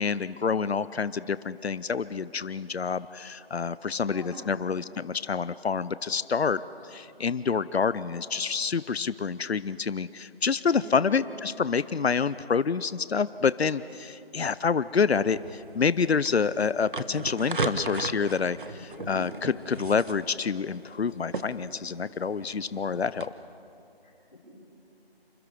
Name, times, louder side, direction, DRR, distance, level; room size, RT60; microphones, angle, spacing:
voice 1, 0.0-18.8 19.1-23.3, left 5 dB, 90° left, 16 dB, 0.7 m, -27 dB
voice 2, 4.0-4.6 10.7-11.0 18.7-19.1 24.0-24.4, left 2 dB, 45° left, -2 dB, 7.7 m, -45 dB
sound 1, 15.4-23.3, right 3 dB, 55° right, 1.4 m, -37 dB
29.0 x 27.5 x 5.0 m, 2.8 s
figure-of-eight pair, 175°, 31 cm